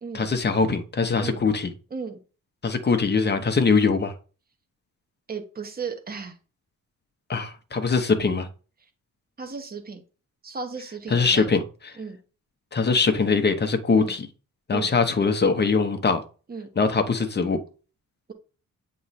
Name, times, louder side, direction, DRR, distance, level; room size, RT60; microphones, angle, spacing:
voice 1, 0.1-1.7 2.6-4.1 7.3-8.5 11.1-11.6 12.7-14.3 14.7-16.2 16.8-17.6, left 4 dB, 30° left, 0.8 m, -22 dB
voice 2, 5.3-6.4 9.4-10.0 10.4-11.5 12.0-12.2 13.9-14.1 14.7-14.9 16.5-16.7, right 5 dB, 25° right, 1.1 m, -35 dB
8.4 x 3.1 x 4.1 m
wide cardioid pair, 145°, 33 cm